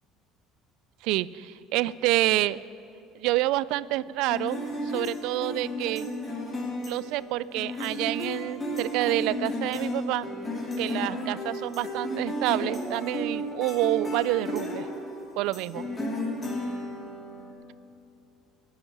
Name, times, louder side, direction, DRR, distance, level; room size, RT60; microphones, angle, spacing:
voice 1, 1.0-2.6 3.2-4.6 4.9-6.1 6.8-10.3 10.8-14.9 15.4-15.9, right 17 dB, 70° right, 20 dB, 0.3 m, -28 dB
sound 1, 4.3-17.5, left 1 dB, 25° left, 2.6 m, -33 dB
13.5 x 7.8 x 9.9 m, 2.6 s
cardioid pair, 135°, 0 cm